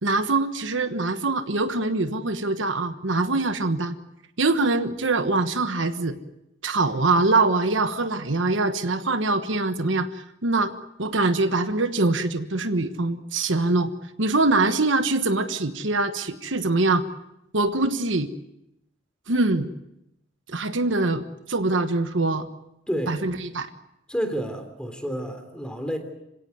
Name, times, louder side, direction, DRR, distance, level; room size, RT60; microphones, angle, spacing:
voice 1, 0.0-3.9 4.4-6.2 6.6-10.7 11.0-13.9 14.2-17.0 17.5-18.3 19.3-19.7 20.5-22.5 23.1-23.7, right 3 dB, 70° right, 9 dB, 1.3 m, -23 dB
voice 2, 22.9-23.2 24.1-26.0, equal, 5° left, 7 dB, 3.3 m, -29 dB
27.0 x 17.0 x 9.4 m, 0.87 s
head